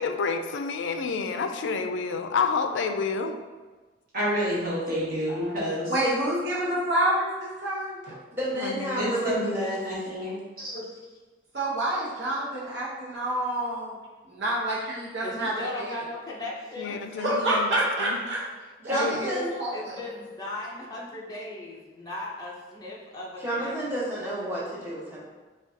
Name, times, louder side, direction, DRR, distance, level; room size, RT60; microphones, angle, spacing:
voice 1, 0.0-3.3 8.5-9.2 16.8-17.7 18.0-18.2 18.9-19.2, left 5 dB, 80° left, 7 dB, 0.3 m, -29 dB
voice 2, 4.1-5.9 9.0-10.7, equal, 50° right, -7 dB, 1.2 m, -29 dB
voice 3, 5.3-5.6 10.5-11.1 15.2-17.2 19.7-24.0, left 2 dB, 20° left, -4 dB, 0.5 m, -38 dB
voice 4, 5.9-8.2 11.5-14.0 14.3-15.9 17.2-18.4 18.8-20.0, right 1 dB, 70° right, -6 dB, 0.8 m, -28 dB
voice 5, 8.3-9.8 18.8-19.5 23.4-25.2, equal, 10° right, -8 dB, 0.9 m, -30 dB
4.9 x 2.3 x 2.6 m, 1.3 s
head